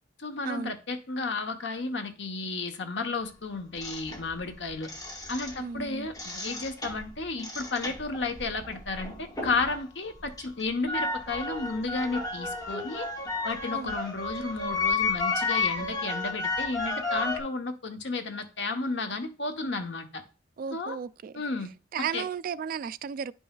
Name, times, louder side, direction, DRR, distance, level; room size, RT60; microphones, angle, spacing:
voice 1, 0.2-4.9 5.3-13.1 13.4-20.2 20.7-21.0 21.3-21.7 22.1-22.3, left 3 dB, 70° left, 1.0 m, -33 dB
sound 1, 3.8-5.8 6.1-9.8 10.1-17.4, left 3 dB, 20° left, 1.3 m, -32 dB
voice 2, 5.6-6.1 13.7-13.9 20.6-21.4 21.9-23.3, right 7 dB, 50° right, 0.3 m, -34 dB
10.0 x 5.4 x 2.4 m
head